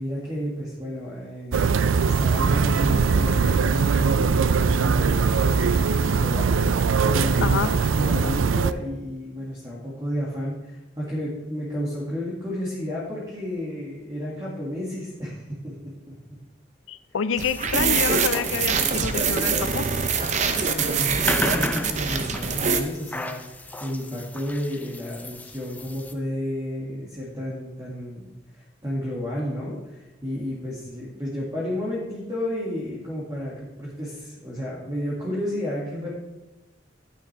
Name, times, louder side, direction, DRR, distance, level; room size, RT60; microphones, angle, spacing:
voice 1, 0.0-1.6 2.0-6.5 7.0-16.1 20.6-36.1, equal, 20° right, -6 dB, 2.0 m, -32 dB
sound 1, 1.5-8.7, right 5 dB, 85° right, 0.4 m, -21 dB
voice 2, 16.9-19.9, left 6 dB, 80° left, 15 dB, 0.5 m, -28 dB
sound 2, 17.4-26.1, left 1 dB, 10° left, 0.5 m, -35 dB
sound 3, 17.4-22.8, right 5 dB, 35° right, 0.7 m, -24 dB
12.5 x 8.8 x 3.4 m, 1.0 s
head